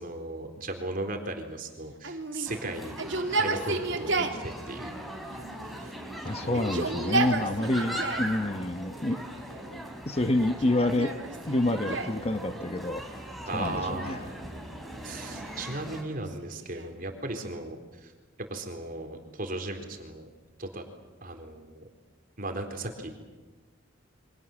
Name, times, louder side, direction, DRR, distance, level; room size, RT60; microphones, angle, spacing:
voice 1, 0.0-3.0 3.3-5.0 5.8-5.9 6.2-7.0 13.5-14.6 15.0-18.1 18.4-20.3 20.6-20.8 21.2-21.9 22.4-23.1, right 2 dB, 45° right, 5 dB, 4.0 m, -37 dB
Yell, 2.0-4.4 5.3-6.1 6.4-8.3 9.1-9.7 10.4-12.2 13.6-14.5 15.3-17.0, right 3 dB, 65° right, 2.8 m, -33 dB
sound 1, 2.5-16.0, right 1 dB, ahead, 4.6 m, -40 dB
voice 2, 6.2-9.2 9.7-11.1 11.5-13.0 13.5-14.3, left 1 dB, 30° left, 9 dB, 1.1 m, -28 dB
29.5 x 25.0 x 7.3 m, 1.3 s
head